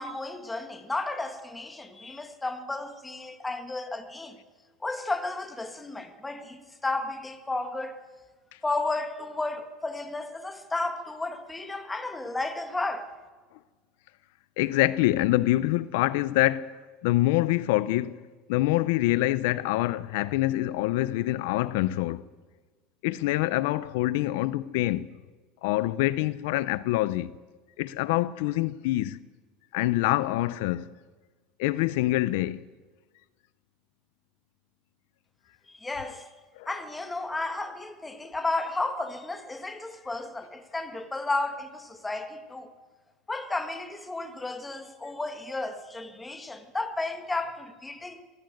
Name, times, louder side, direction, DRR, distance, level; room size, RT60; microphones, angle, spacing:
voice 1, 0.0-4.4 4.8-8.0 8.6-13.1 35.7-36.3 36.7-42.7 43.3-48.2, left 2 dB, 10° left, 1.6 m, -33 dB
voice 2, 14.6-16.7 17.0-18.2 18.5-22.2 23.0-25.1 25.6-27.3 27.8-29.2 29.7-30.9 31.6-32.6 36.6-36.7, left 17 dB, 70° left, 0.6 m, -25 dB
23.0 x 15.5 x 7.8 m
supercardioid pair, 155°, 0 cm